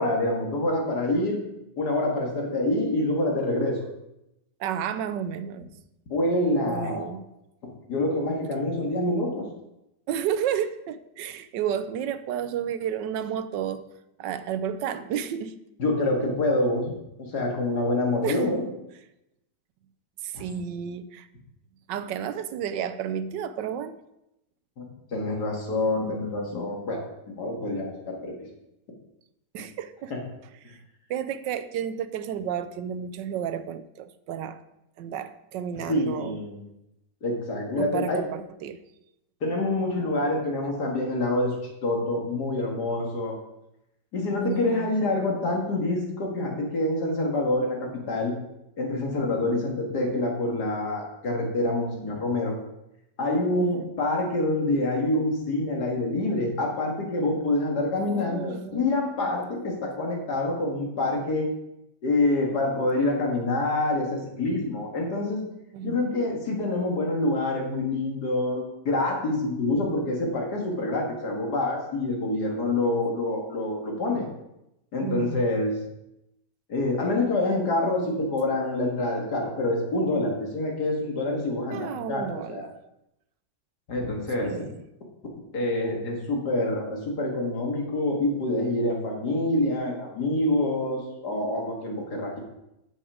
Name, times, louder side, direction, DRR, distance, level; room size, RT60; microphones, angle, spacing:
voice 1, 0.0-1.4 1.8-3.8 6.1-7.1 7.9-9.5 15.8-16.9 17.2-18.6 20.3-20.4 24.8-27.0 27.3-28.3 30.1-30.2 30.6-30.7 35.9-36.6 37.2-38.2 39.4-41.6 41.8-43.3 44.1-48.3 48.8-52.6 53.2-61.5 62.0-65.4 65.8-74.3 74.9-75.8 76.7-82.2 82.5-82.7 83.9-84.5 85.5-92.4, left 2 dB, 65° left, 0 dB, 2.5 m, -26 dB
voice 2, 4.6-5.7 6.6-7.3 10.1-13.8 14.2-15.6 18.2-18.4 20.2-21.3 21.9-24.0 29.5-30.1 30.6-30.8 31.1-34.6 35.0-36.4 37.8-38.8 44.4-45.3 53.6-53.9 58.0-58.8 65.7-66.1 75.0-75.4 81.7-82.7 84.4-84.8, right 8 dB, 85° right, 12 dB, 1.3 m, -32 dB
9.5 x 7.1 x 4.9 m, 0.87 s
omnidirectional pair, 1.9 m